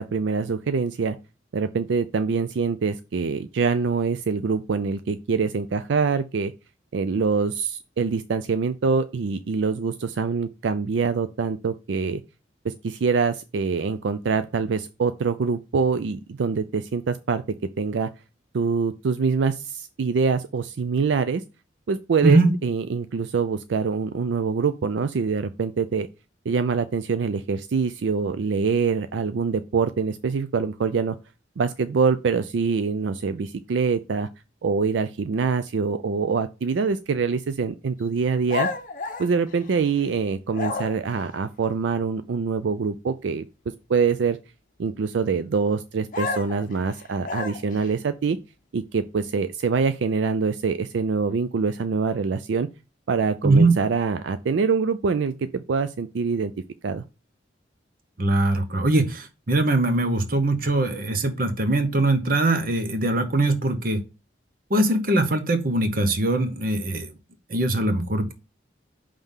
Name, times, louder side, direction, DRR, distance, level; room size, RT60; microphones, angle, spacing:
voice 1, 0.1-1.2 1.5-6.5 6.9-12.2 12.6-17.4 17.8-18.1 18.5-21.4 21.9-26.1 26.5-31.2 31.6-34.3 34.6-38.7 39.2-43.5 43.9-44.4 44.8-48.4 48.7-52.7 53.1-56.5 56.8-57.0, right 5 dB, 80° right, 11 dB, 0.4 m, -24 dB
sound 1, 38.5-40.1 40.5-41.2 46.1-47.9, left 4 dB, 45° left, 0.7 m, -31 dB
voice 2, 53.4-53.8 58.2-64.0 64.7-67.1 67.5-68.3, right 2 dB, 50° right, 8 dB, 0.9 m, -21 dB
5.5 x 3.4 x 5.5 m, 0.29 s
head